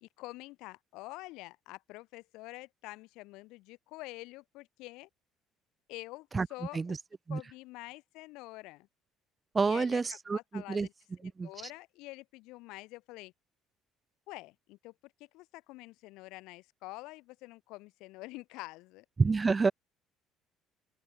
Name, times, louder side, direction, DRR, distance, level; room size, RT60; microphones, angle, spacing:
voice 1, 0.0-5.1 5.9-7.0 7.3-8.9 9.6-10.9 11.2-13.3 14.3-19.0, left 21 dB, 85° left, 2.7 m, -47 dB
voice 2, 9.5-10.9 11.4-11.5 19.2-19.7, right 4 dB, 15° right, 0.4 m, -28 dB
open air
cardioid pair, 170°, 0 cm